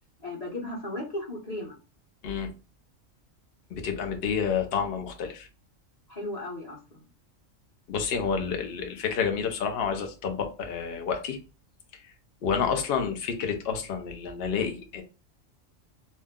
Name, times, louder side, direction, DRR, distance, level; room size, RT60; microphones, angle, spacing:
voice 1, 0.2-1.7 6.1-7.0, left 1 dB, 35° left, -3 dB, 1.1 m, -35 dB
voice 2, 3.7-5.5 7.9-11.4 12.4-15.0, left 6 dB, 55° left, 4 dB, 0.8 m, -29 dB
2.7 x 2.1 x 3.5 m, 0.32 s
omnidirectional pair, 1.3 m